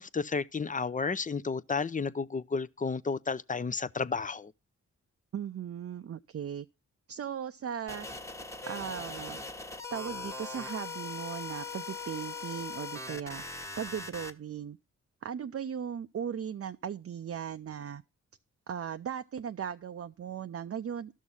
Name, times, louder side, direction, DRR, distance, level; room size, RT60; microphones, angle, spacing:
voice 1, 0.0-4.5, left 4 dB, 25° left, 0.5 m, -32 dB
voice 2, 5.3-6.7 7.1-8.1 8.7-9.4 9.9-13.4 13.8-14.8 15.2-18.0 18.7-21.2, right 8 dB, 50° right, 0.5 m, -37 dB
sound 1, 7.9-14.3, left 3 dB, 10° left, 1.2 m, -40 dB
12.5 x 6.4 x 5.5 m
cardioid pair, 65°, 31 cm